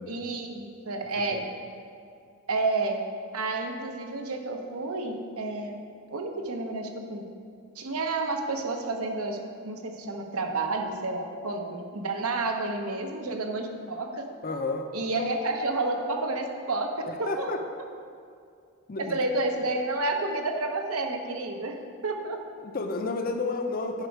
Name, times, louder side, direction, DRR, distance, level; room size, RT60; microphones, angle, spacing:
voice 1, 0.1-1.4 2.5-3.1 3.3-5.8 6.1-7.3 7.8-14.3 14.9-17.5 19.0-22.4 24.0-24.1, right 2 dB, 80° right, 4 dB, 0.9 m, -30 dB
voice 2, 14.4-14.9 15.2-15.3 17.1-17.6 18.9-19.2 22.6-24.1, left 3 dB, 40° left, 5 dB, 0.6 m, -31 dB
9.7 x 5.2 x 4.7 m, 2.4 s
head